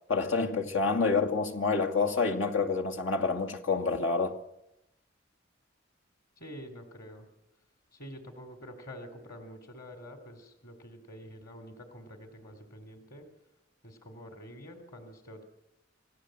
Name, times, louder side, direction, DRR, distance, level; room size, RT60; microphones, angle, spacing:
voice 1, 0.1-4.4, left 4 dB, 85° left, 2.4 m, -28 dB
voice 2, 6.4-7.3 7.9-13.3 13.8-15.4, equal, 50° left, 3.1 m, -47 dB
28.0 x 17.5 x 7.7 m
head